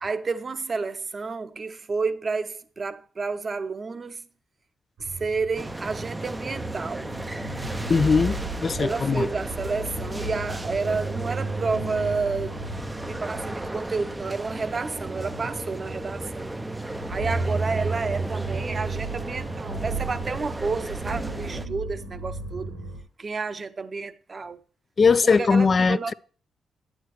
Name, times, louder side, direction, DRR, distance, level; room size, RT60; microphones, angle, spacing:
voice 1, 0.0-4.2 5.0-7.1 8.8-12.6 13.1-16.5 17.1-22.7 23.2-24.6 25.4-26.1, right 4 dB, 45° right, 0.7 m, -30 dB
sound 1, 5.0-23.0, right 3 dB, 90° right, 4.0 m, -34 dB
sound 2, 5.6-21.7, right 1 dB, 15° right, 0.4 m, -35 dB
voice 2, 7.9-9.3 25.0-26.1, left 5 dB, 45° left, 0.3 m, -20 dB
9.5 x 9.1 x 3.1 m
supercardioid pair, 55°, 0 cm